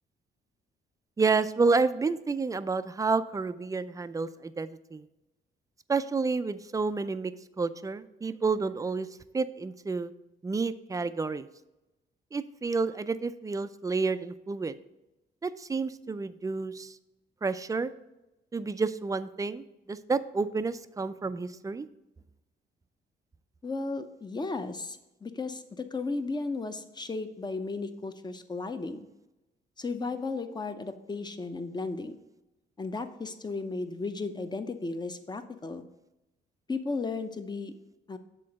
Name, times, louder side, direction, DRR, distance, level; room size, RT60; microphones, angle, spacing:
voice 1, 1.2-5.1 5.9-7.3 7.6-9.1 9.3-10.1 10.4-11.5 12.3-14.7 15.4-17.0 17.4-17.9 18.5-21.9, right 4 dB, 15° right, 13 dB, 0.4 m, -30 dB
voice 2, 23.6-29.1 29.8-32.2 32.8-35.9 36.7-37.7 38.1-38.2, left 3 dB, 20° left, 8 dB, 0.7 m, -35 dB
7.7 x 3.8 x 6.3 m, 0.98 s
cardioid pair, 105°, 20 cm